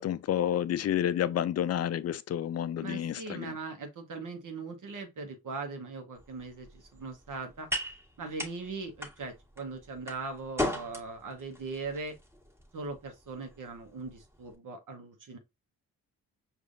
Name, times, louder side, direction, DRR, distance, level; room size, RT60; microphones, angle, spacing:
voice 1, 0.0-3.5, left 10 dB, 40° left, 0.4 m, -30 dB
voice 2, 2.8-7.7 8.2-12.2 12.7-15.4, right 4 dB, 50° right, 1.0 m, -40 dB
sound 1, 6.1-14.5, left 1 dB, 5° right, 1.5 m, -40 dB
4.8 x 2.5 x 2.5 m
supercardioid pair, 45°, 39 cm